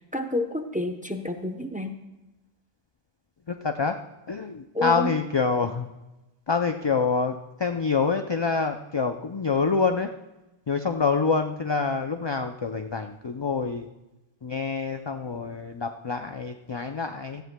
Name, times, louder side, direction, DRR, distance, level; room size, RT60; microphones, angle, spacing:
voice 1, 0.1-1.9 4.7-5.1, left 2 dB, 10° right, 6 dB, 0.6 m, -29 dB
voice 2, 3.5-4.0 4.3-5.9 6.5-10.1 10.7-13.9 14.4-17.4, left 4 dB, 45° left, 5 dB, 0.3 m, -26 dB
17.0 x 14.0 x 2.2 m, 1.0 s
omnidirectional pair, 1.1 m